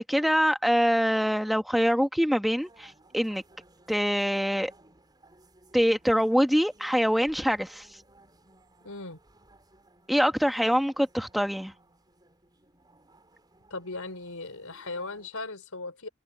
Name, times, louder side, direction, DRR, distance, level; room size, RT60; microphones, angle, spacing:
voice 1, 0.0-3.4 3.9-4.7 5.7-7.9 10.1-11.7, equal, ahead, 1.2 m, -24 dB
sound 1, 2.5-15.3, right 2 dB, 20° right, 4.6 m, -59 dB
voice 2, 8.8-9.2 13.7-16.1, left 3 dB, 85° left, 4.5 m, -38 dB
head